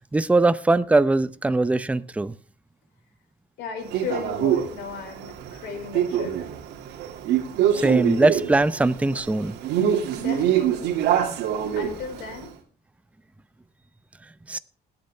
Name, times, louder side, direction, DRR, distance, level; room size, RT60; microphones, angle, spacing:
voice 1, 0.1-2.3 7.7-9.6 14.5-14.6, right 2 dB, 10° right, 0.6 m, -21 dB
voice 2, 3.6-6.3 10.1-10.9 11.7-12.5, left 6 dB, 85° left, 5.0 m, -35 dB
Male speech man speaking, 3.9-12.4, right 10 dB, 85° right, 2.4 m, -25 dB
20.0 x 8.7 x 3.4 m
cardioid pair, 110°, 17 cm